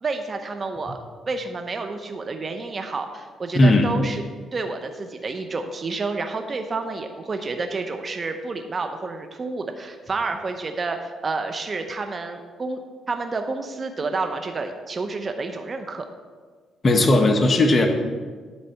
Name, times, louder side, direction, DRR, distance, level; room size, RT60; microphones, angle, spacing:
voice 1, 0.0-1.0 1.3-4.2 4.5-12.8 13.1-16.1, right 3 dB, 35° right, 6 dB, 0.8 m, -29 dB
voice 2, 3.5-3.9 16.8-17.9, left 2 dB, 35° left, 4 dB, 1.2 m, -17 dB
10.5 x 4.1 x 6.7 m, 1.5 s
cardioid pair, 90°, 0 cm